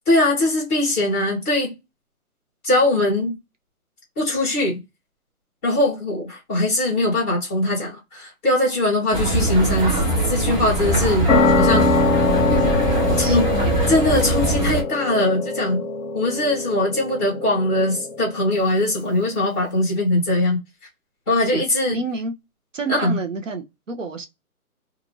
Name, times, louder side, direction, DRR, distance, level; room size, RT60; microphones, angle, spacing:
voice 1, 0.1-1.7 2.6-3.3 4.2-4.8 5.6-11.3 11.6-11.9 13.2-13.4 13.9-15.8 16.1-20.6 21.3-22.0 22.9-23.2, left 1 dB, 10° left, 1.1 m, -21 dB
sound 1, 9.1-14.8, right 1 dB, 30° right, 1.2 m, -22 dB
sound 2, 11.3-18.5, left 4 dB, 60° left, 0.8 m, -23 dB
voice 2, 13.1-13.8 21.5-22.3 22.7-24.3, right 3 dB, 55° right, 0.7 m, -29 dB
2.6 x 2.4 x 3.0 m
hypercardioid pair, 165°, 45 cm